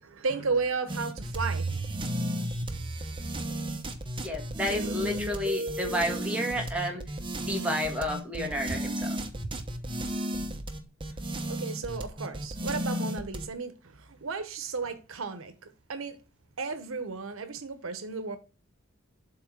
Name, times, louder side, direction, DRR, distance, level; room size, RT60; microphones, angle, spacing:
voice 1, 0.0-1.7 11.5-16.2 16.6-18.4, right 4 dB, 80° right, 0.9 m, -34 dB
sound 1, 0.9-13.5, right 1 dB, 25° right, 0.9 m, -33 dB
voice 2, 4.2-7.0 7.4-9.2, equal, 5° right, 1.5 m, -31 dB
7.8 x 3.1 x 5.9 m
head